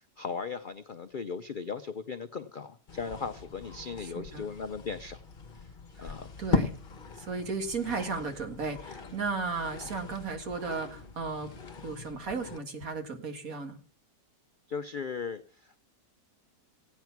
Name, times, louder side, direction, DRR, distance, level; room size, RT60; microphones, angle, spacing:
voice 1, 0.0-5.2 5.6-5.7 6.0-6.3 14.7-15.8, left 5 dB, 60° left, 9 dB, 0.5 m, -37 dB
sound 1, 2.9-12.6, left 4 dB, 35° left, 1.1 m, -38 dB
voice 2, 4.0-4.5 6.0-6.1 6.4-6.8 7.2-11.5 11.8-13.8, right 4 dB, 55° right, 5 dB, 2.1 m, -35 dB
15.5 x 9.4 x 5.9 m, 0.43 s
omnidirectional pair, 1.8 m